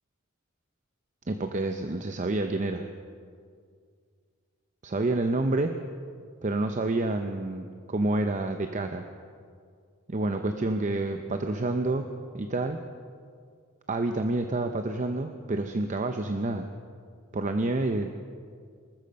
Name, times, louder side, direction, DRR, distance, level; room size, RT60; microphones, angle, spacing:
voice 1, 1.3-2.9 4.8-5.7 6.4-9.0 10.1-12.1 12.3-12.8 13.9-16.7 17.3-18.1, right 2 dB, 35° right, 6 dB, 0.6 m, -28 dB
20.0 x 13.5 x 5.3 m, 2.1 s
head